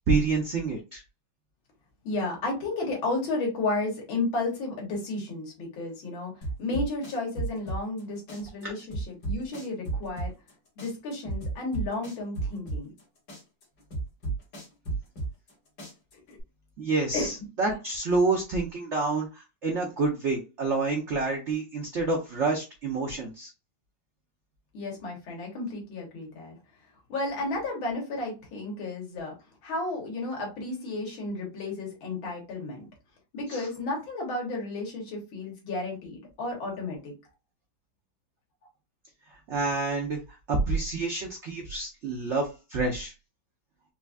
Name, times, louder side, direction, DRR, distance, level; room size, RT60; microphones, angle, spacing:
voice 1, 0.1-1.0 8.6-8.7 16.8-23.5 33.5-33.7 39.5-40.2 40.5-43.1, right 3 dB, 80° right, 1 dB, 0.6 m, -28 dB
voice 2, 2.0-6.3 6.6-10.3 10.8-12.9 16.3-16.4 17.1-17.3 17.7-17.8 24.7-26.6 27.1-29.3 29.6-32.9 33.3-37.1, left 2 dB, 85° left, -1 dB, 2.1 m, -32 dB
sound 1, 6.4-8.0 8.3-10.5 10.8-13.0 13.3-15.5 15.8-16.4, right 3 dB, 55° left, 2.2 m, -33 dB
4.5 x 2.5 x 2.3 m, 0.28 s
omnidirectional pair, 2.1 m